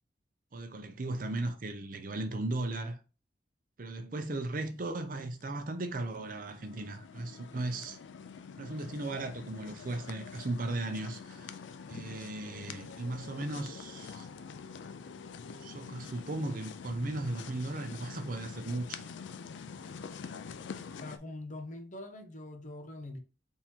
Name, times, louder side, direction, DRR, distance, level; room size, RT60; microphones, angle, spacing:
voice 1, 0.5-3.0 3.8-8.0 8.6-11.6 11.9-14.3 15.6-19.1, right 2 dB, 50° right, 0.6 m, -36 dB
sound 1, 5.4-21.2, left 6 dB, 85° left, 0.4 m, -46 dB
voice 2, 20.9-23.2, left 2 dB, 45° left, 0.7 m, -43 dB
3.7 x 2.9 x 4.3 m
head